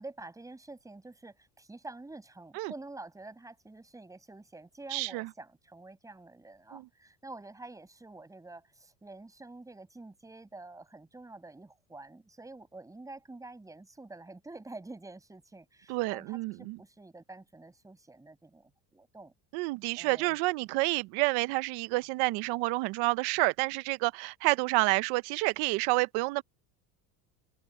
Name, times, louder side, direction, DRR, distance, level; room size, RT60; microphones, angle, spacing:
voice 1, 0.0-19.3 20.0-20.4, right 2 dB, 10° right, 6.2 m, -48 dB
voice 2, 4.9-5.3 6.7-6.8 15.9-16.8 19.5-26.4, right 23 dB, 65° right, 0.7 m, -29 dB
open air
cardioid pair, 160°, 41 cm